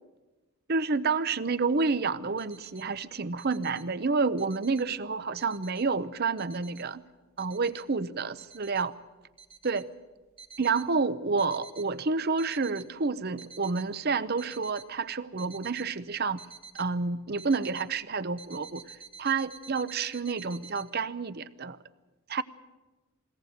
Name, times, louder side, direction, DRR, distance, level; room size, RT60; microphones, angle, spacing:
voice 1, 0.7-7.0 7.4-8.9 9.6-9.9 10.6-16.4 16.7-18.8 19.2-21.8 22.3-22.4, right 4 dB, 45° right, 14 dB, 0.7 m, -29 dB
sound 1, 2.2-2.9 3.3-3.9 4.2-4.9 5.4-5.9 6.4-6.9 7.4-7.9 8.4-8.9 9.4-9.8 10.4-10.9 11.4-11.9 12.2-12.9 13.4-13.9 14.4-14.9 15.4-15.9 16.4-16.9 17.4-17.9 18.4-20.9, right 5 dB, 25° right, 1.8 m, -49 dB
22.0 x 17.5 x 8.0 m, 1.2 s
head